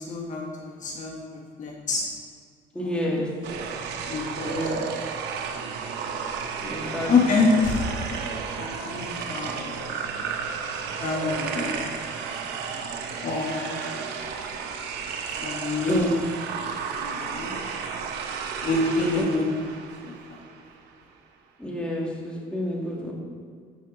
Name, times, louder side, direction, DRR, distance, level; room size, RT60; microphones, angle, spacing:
voice 1, 0.0-2.0 2.8-3.3 4.0-4.7 7.1-7.8 8.6-9.8 11.0-11.9 12.4-12.8 13.2-13.8 15.4-16.1 16.9-17.6 18.6-19.8 20.0-20.4, left 3 dB, 45° left, -1 dB, 1.4 m, -27 dB
voice 2, 2.7-3.4 4.4-4.8 6.6-7.1 15.9-16.1 19.2-19.3 21.6-23.1, left 1 dB, 5° left, -3 dB, 2.2 m, -29 dB
sound 1, 3.4-20.8, right 6 dB, 80° right, 1.0 m, -33 dB
12.5 x 5.6 x 4.0 m, 2.1 s
cardioid pair, 110°, 17 cm